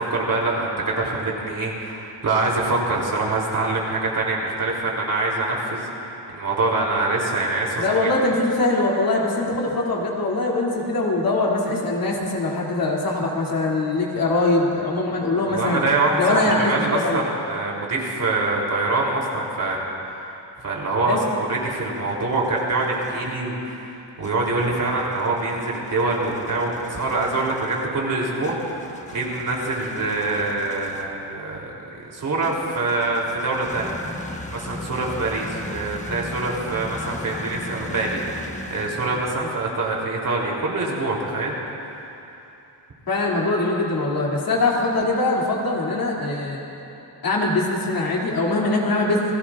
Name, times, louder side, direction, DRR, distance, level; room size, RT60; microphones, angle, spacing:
voice 1, 0.0-8.1 15.5-19.8 20.1-20.3 20.6-28.6 29.1-33.9 34.5-38.2 38.7-41.6, right 2 dB, 45° right, -2 dB, 3.3 m, -25 dB
voice 2, 7.8-15.8 16.2-17.2 21.1-21.2 39.4-39.5 43.1-46.6 47.2-49.3, left 2 dB, 50° left, -3 dB, 2.7 m, -22 dB
sound 1, 21.6-23.3 24.2-31.2 32.4-39.7, left 2 dB, 15° left, 1.2 m, -39 dB
28.5 x 17.0 x 2.5 m, 2.9 s
cardioid pair, 120°, 43 cm